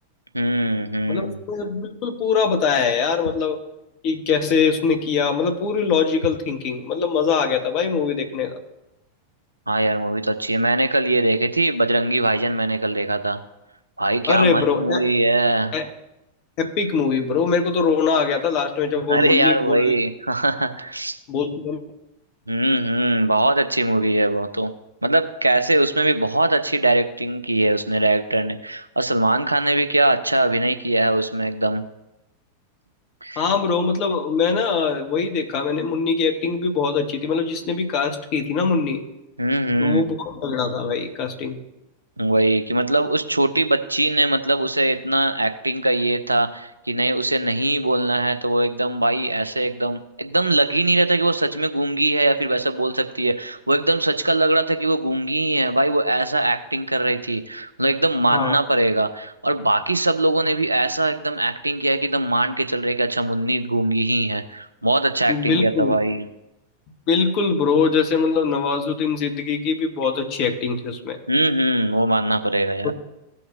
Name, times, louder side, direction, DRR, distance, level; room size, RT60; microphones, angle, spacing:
voice 1, 0.3-1.4 9.7-13.4 14.0-15.8 19.1-21.2 22.5-24.7 25.0-31.8 33.2-33.4 39.4-40.0 42.2-66.3 71.3-72.9, right 1 dB, 85° right, 9 dB, 0.5 m, -21 dB
voice 2, 1.1-3.6 4.0-8.6 14.3-15.1 15.7-15.8 16.6-19.9 21.3-21.8 33.4-39.0 39.8-41.6 58.3-58.6 65.3-66.0 67.1-71.2 72.8-72.9, left 5 dB, 45° left, 5 dB, 1.3 m, -22 dB
16.5 x 5.7 x 2.7 m, 0.93 s
figure-of-eight pair, 90°, 0 cm